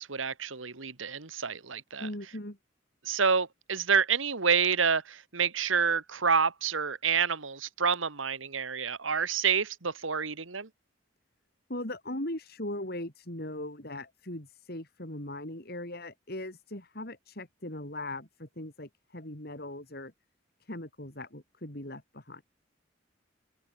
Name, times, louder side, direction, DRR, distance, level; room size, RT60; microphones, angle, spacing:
voice 1, 0.0-2.1 3.0-10.7, right 6 dB, 85° right, 1.8 m, -28 dB
voice 2, 2.0-2.6 11.7-20.1 20.6-22.4, left 1 dB, 50° left, 5.2 m, -39 dB
head